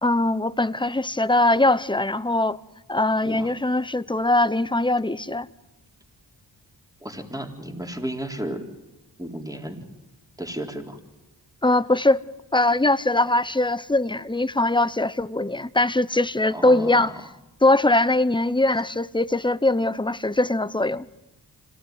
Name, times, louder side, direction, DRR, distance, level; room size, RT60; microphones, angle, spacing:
voice 1, 0.0-2.6 2.9-5.5 11.6-12.2 12.5-17.1 17.6-21.0, left 2 dB, 10° left, 0.9 m, -21 dB
voice 2, 7.0-8.6 9.2-9.9 10.4-11.0 16.5-17.0, right 1 dB, 10° right, 4.0 m, -33 dB
26.5 x 18.0 x 9.6 m
cardioid pair, 45°, 44 cm